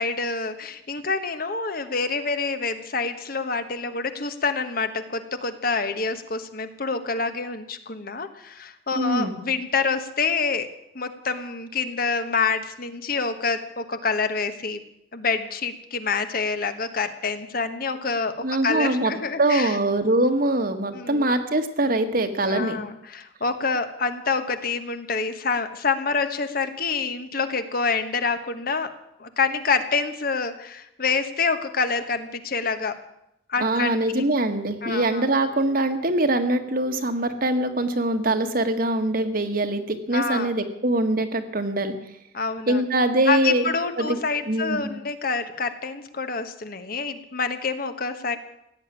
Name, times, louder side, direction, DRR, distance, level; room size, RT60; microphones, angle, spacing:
voice 1, 0.0-10.7 10.9-14.8 15.1-19.8 20.9-21.3 22.5-28.9 29.2-33.0 33.5-34.2 34.8-35.2 40.1-40.5 42.3-42.8 43.3-48.4, left 4 dB, 50° left, 9 dB, 1.3 m, -27 dB
voice 2, 8.9-9.4 18.4-19.1 19.4-22.9 33.6-41.9 42.7-43.7 44.0-44.2 44.5-44.9, right 1 dB, 50° right, 7 dB, 1.6 m, -23 dB
16.5 x 8.9 x 9.7 m, 0.82 s
head